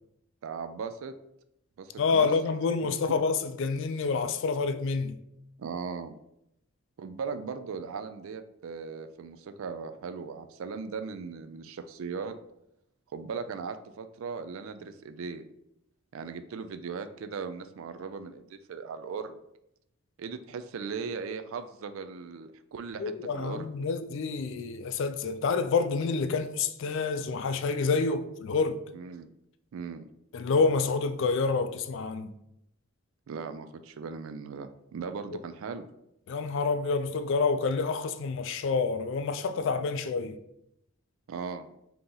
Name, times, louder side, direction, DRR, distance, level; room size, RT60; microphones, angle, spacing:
voice 1, 0.4-1.1 1.8-2.3 5.6-6.2 7.0-12.3 13.1-15.4 16.1-19.4 20.2-23.7 28.9-29.3 29.7-30.1 33.3-35.9 41.3-41.7, right 5 dB, 65° right, 0.3 m, -38 dB
voice 2, 2.0-5.2 23.0-28.8 30.3-32.3 36.3-40.4, left 4 dB, 55° left, 0.3 m, -28 dB
3.8 x 2.9 x 3.8 m
head